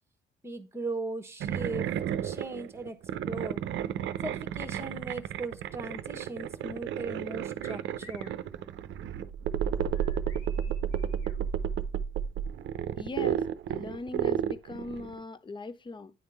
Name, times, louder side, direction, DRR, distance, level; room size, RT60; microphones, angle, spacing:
voice 1, 0.4-1.9 2.2-3.6 4.2-8.3, right 2 dB, 15° right, 1.1 m, -38 dB
sound 1, 1.4-15.2, right 9 dB, 75° right, 0.6 m, -32 dB
sound 2, 7.6-8.4 9.9-11.4, left 4 dB, 85° left, 2.1 m, -53 dB
voice 2, 13.0-16.1, left 3 dB, 25° left, 0.6 m, -40 dB
9.8 x 3.6 x 3.4 m
cardioid pair, 90°, 20 cm